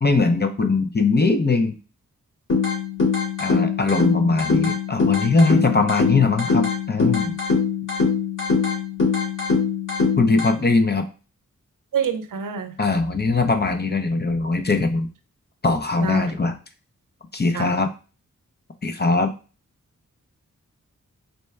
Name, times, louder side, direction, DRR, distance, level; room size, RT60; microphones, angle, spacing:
voice 1, 0.0-1.7 3.4-7.3 10.2-11.1 12.8-15.1 15.6-16.5 17.3-17.9 18.8-19.3, left 3 dB, 30° left, 6 dB, 0.6 m, -20 dB
sound 1, 2.5-10.5, left 5 dB, 70° left, 1.7 m, -22 dB
voice 2, 11.9-12.8 16.0-16.3 17.5-17.8, right 7 dB, 80° right, 9 dB, 0.6 m, -27 dB
4.1 x 2.2 x 3.2 m, 0.34 s
cardioid pair, 40°, 32 cm